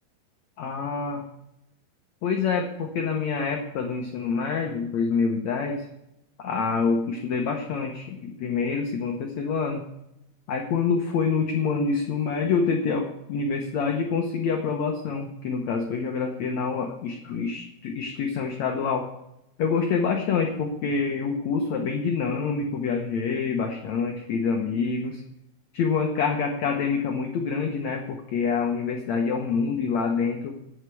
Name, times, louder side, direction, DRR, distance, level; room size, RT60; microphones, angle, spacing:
voice 1, 0.6-1.2 2.2-5.9 6.4-9.8 10.5-19.1 19.6-25.2 25.7-30.6, left 5 dB, 70° left, 2 dB, 1.7 m, -26 dB
8.9 x 8.0 x 8.2 m, 0.84 s
omnidirectional pair, 4.5 m